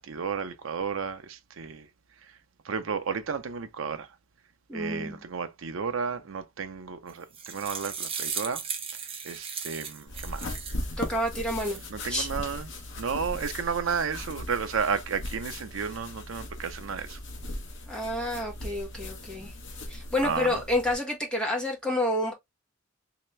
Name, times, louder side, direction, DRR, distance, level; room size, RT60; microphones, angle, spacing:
voice 1, 0.0-1.9 2.6-4.1 4.7-8.6 9.2-10.5 11.9-12.7 13.0-17.2 20.2-20.6, right 6 dB, 70° right, 0.6 m, -32 dB
voice 2, 4.7-5.2 11.0-11.8 12.1-12.3 17.9-19.5 19.9-22.3, left 1 dB, 5° left, 1.2 m, -29 dB
sound 1, 7.1-10.9 11.3-11.9, right 6 dB, 25° right, 0.7 m, -36 dB
sound 2, 10.1-20.9, left 1 dB, 60° left, 0.9 m, -38 dB
3.3 x 2.9 x 3.1 m
head